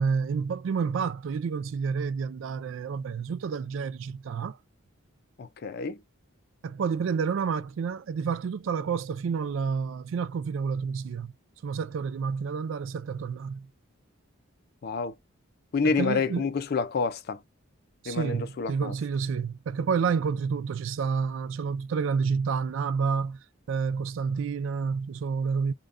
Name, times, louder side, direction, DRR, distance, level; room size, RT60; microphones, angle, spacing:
voice 1, 0.0-4.6 6.6-11.3 11.6-13.7 15.8-16.5 18.0-23.4 23.7-25.7, right 5 dB, 70° right, 0.3 m, -29 dB
voice 2, 5.4-6.0 14.8-15.1 15.7-17.4 18.1-18.9, left 4 dB, 50° left, 0.4 m, -28 dB
2.5 x 2.2 x 3.4 m
head